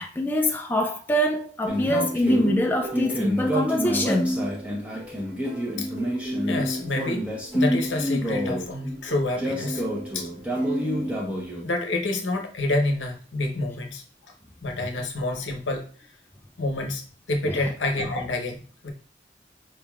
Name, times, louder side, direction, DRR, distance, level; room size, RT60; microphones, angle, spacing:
voice 1, 0.0-4.4 10.9-11.2 17.4-17.7, left 1 dB, 10° left, 0.4 m, -25 dB
sound 1, 1.7-11.6, equal, 5° right, 0.9 m, -28 dB
voice 2, 6.5-7.2 7.5-9.8 10.1-10.3 11.6-14.3 14.6-16.1 16.6-17.0 17.3-18.9, left 2 dB, 90° left, 0.9 m, -28 dB
5.4 x 3.4 x 2.4 m
head